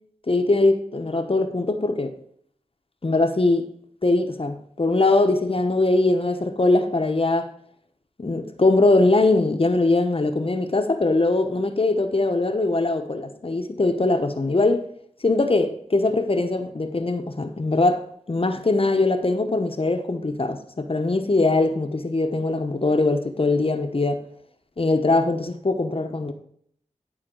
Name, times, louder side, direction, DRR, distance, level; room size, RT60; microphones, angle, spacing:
voice 1, 0.3-2.1 3.0-3.7 4.0-7.5 8.2-14.8 15.2-18.0 18.3-24.2 24.8-26.3, left 2 dB, 45° left, 1.0 m, -21 dB
11.5 x 4.1 x 6.2 m
cardioid pair, 45°, 13 cm